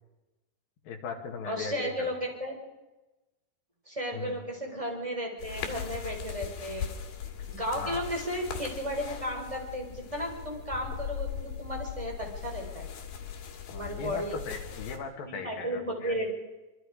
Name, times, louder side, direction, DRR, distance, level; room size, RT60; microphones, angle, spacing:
voice 1, 0.9-2.1 4.1-4.4 7.8-8.0 13.7-16.1, left 5 dB, 70° left, 3 dB, 4.0 m, -38 dB
voice 2, 1.5-2.6 3.9-6.9 7.5-12.9 13.7-14.3 15.3-16.3, equal, 10° right, 1 dB, 4.3 m, -34 dB
sound 1, 5.4-15.0, left 8 dB, 90° left, 4.1 m, -39 dB
25.5 x 23.5 x 5.1 m, 1.1 s
omnidirectional pair, 4.4 m